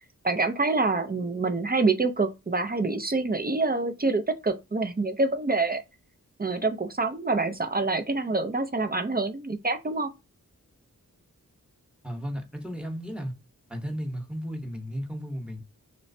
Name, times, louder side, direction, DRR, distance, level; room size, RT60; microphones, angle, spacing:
voice 1, 0.2-5.8 6.4-10.1, right 3 dB, 30° right, 0.5 m, -26 dB
voice 2, 12.0-13.3 13.7-15.6, equal, 5° right, 0.9 m, -34 dB
3.1 x 3.0 x 2.6 m
wide cardioid pair, 55°, 34 cm